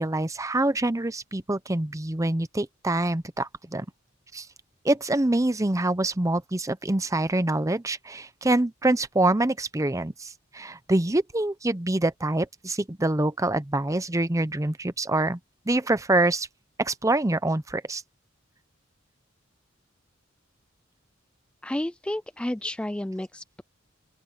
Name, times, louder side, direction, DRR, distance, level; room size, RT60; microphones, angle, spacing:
voice 1, 0.0-3.9 4.3-4.5 4.8-15.4 15.7-16.5 16.8-18.0, right 2 dB, 15° right, 0.7 m, -25 dB
voice 2, 21.6-23.6, left 1 dB, 5° left, 0.3 m, -31 dB
open air
head